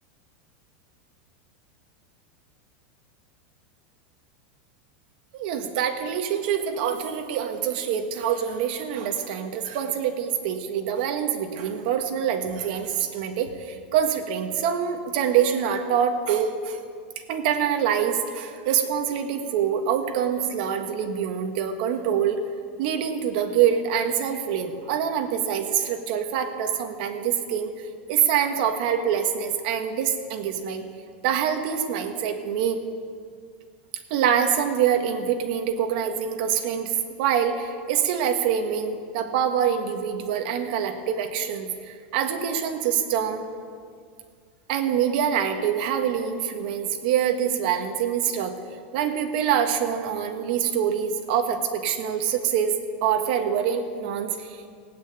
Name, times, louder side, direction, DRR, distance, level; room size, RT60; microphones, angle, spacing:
voice 1, 5.3-16.8 17.3-22.4 22.8-27.7 28.1-30.8 31.2-32.8 34.1-43.4 44.7-48.6 48.9-52.7 53.0-54.7, right 8 dB, 55° right, 5 dB, 1.6 m, -25 dB
16.5 x 9.0 x 9.3 m, 2.1 s
supercardioid pair, 170°, 6 cm